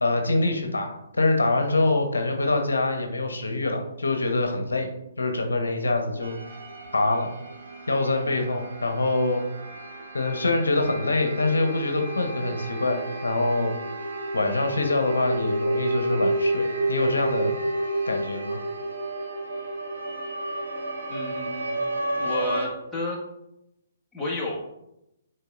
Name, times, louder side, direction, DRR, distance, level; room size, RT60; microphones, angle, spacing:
voice 1, 0.0-4.9 5.2-6.4 6.9-7.3 7.9-9.4 10.1-13.7 14.3-17.6 18.0-18.6, left 2 dB, 75° left, 4 dB, 0.9 m, -25 dB
sound 1, 6.2-22.7, right 1 dB, 65° right, 1.4 m, -31 dB
voice 2, 21.1-21.8 22.2-23.2 24.1-24.7, left 1 dB, ahead, -8 dB, 1.7 m, -31 dB
9.2 x 4.6 x 2.5 m, 0.86 s
figure-of-eight pair, 130°, 0 cm